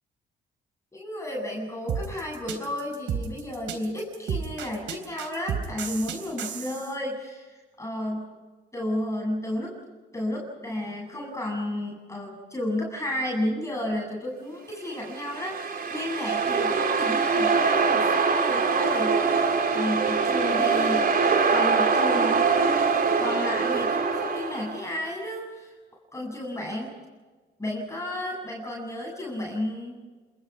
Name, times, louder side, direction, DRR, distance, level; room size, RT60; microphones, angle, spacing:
voice 1, 0.9-8.3 8.7-9.7 10.1-19.5 19.7-21.1 21.5-22.5 23.2-25.7 26.1-27.0 27.6-30.0, left 1 dB, 15° left, -1 dB, 8.0 m, -32 dB
sound 1, 1.9-6.9, right 7 dB, 75° right, 3.6 m, -32 dB
sound 2, 15.0-24.8, right 5 dB, 50° right, 4.0 m, -23 dB
28.5 x 22.0 x 6.0 m, 1.3 s
cardioid pair, 90°, 20 cm